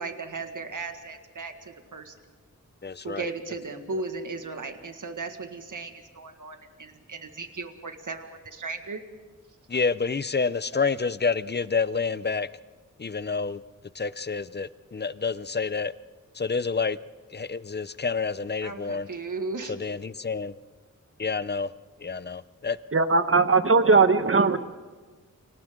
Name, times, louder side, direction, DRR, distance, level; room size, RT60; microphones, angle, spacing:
voice 1, 0.0-2.1 3.0-9.0 18.6-19.7, right 3 dB, 75° right, 6 dB, 1.8 m, -36 dB
voice 2, 2.8-3.3 3.9-4.0 9.7-12.5 13.0-13.6 14.0-15.9 16.4-17.0 17.3-19.1 19.7-20.5 21.2-21.7 22.0-22.8, left 5 dB, 35° left, 15 dB, 0.6 m, -28 dB
voice 3, 22.9-24.6, right 4 dB, 45° right, 10 dB, 1.2 m, -19 dB
30.0 x 26.0 x 3.8 m, 1.4 s
wide cardioid pair, 90°, 32 cm